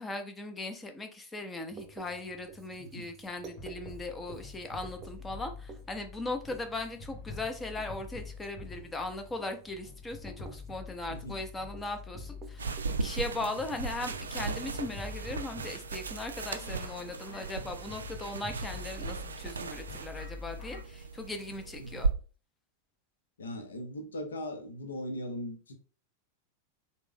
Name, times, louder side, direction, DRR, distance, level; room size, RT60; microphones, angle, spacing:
voice 1, 0.0-22.1, left 2 dB, 15° left, 0.6 m, -38 dB
Writing, 1.7-13.4, right 4 dB, 25° right, 0.7 m, -52 dB
voice 2, 2.8-3.1 11.1-11.4 21.8-22.1 23.4-25.7, left 1 dB, 70° left, 0.7 m, -39 dB
sound 1, 3.3-20.8, left 4 dB, 40° left, 1.1 m, -46 dB
Someone Putting on a Blazer, 12.6-22.1, right 4 dB, 70° right, 0.3 m, -37 dB
3.3 x 2.1 x 3.6 m
figure-of-eight pair, 90°, 0 cm